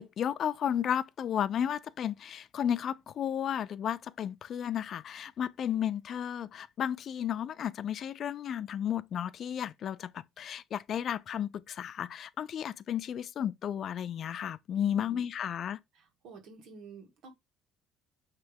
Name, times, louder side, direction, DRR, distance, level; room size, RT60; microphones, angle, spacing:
voice 1, 0.0-15.8, left 9 dB, 50° left, 0.4 m, -33 dB
voice 2, 14.8-15.3 15.9-17.3, right 4 dB, 65° right, 2.1 m, -50 dB
9.0 x 3.3 x 3.5 m
cardioid pair, 125°, 0 cm